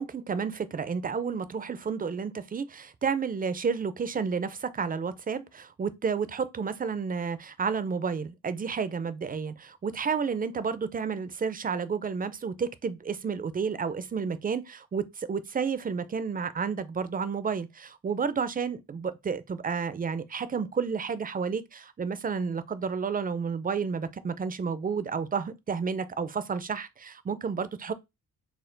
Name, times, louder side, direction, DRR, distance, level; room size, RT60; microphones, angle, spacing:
voice 1, 0.0-27.9, right 6 dB, 25° right, 0.4 m, -31 dB
4.2 x 2.4 x 3.8 m
wide cardioid pair, 105°, 35 cm